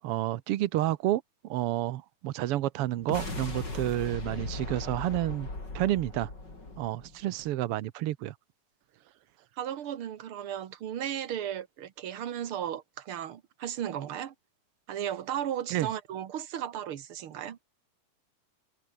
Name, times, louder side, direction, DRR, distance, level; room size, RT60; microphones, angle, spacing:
voice 1, 0.0-5.5 5.7-6.3 6.8-8.3 15.7-15.9, right 14 dB, 80° right, 1.3 m, -30 dB
sound 1, 3.0-7.5, left 2 dB, 30° left, 6.7 m, -38 dB
voice 2, 9.6-14.3 14.9-17.6, right 10 dB, 55° right, 1.9 m, -35 dB
omnidirectional pair, 3.7 m